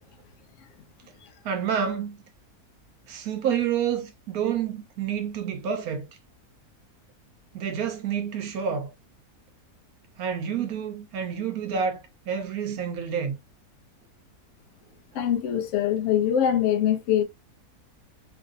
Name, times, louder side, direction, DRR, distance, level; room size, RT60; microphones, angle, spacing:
voice 1, 1.4-2.2 3.1-6.0 7.5-8.9 10.2-13.3, right 7 dB, 75° right, 1.1 m, -28 dB
voice 2, 15.1-17.2, left 10 dB, 65° left, 0.8 m, -23 dB
3.2 x 2.5 x 2.4 m
omnidirectional pair, 1.6 m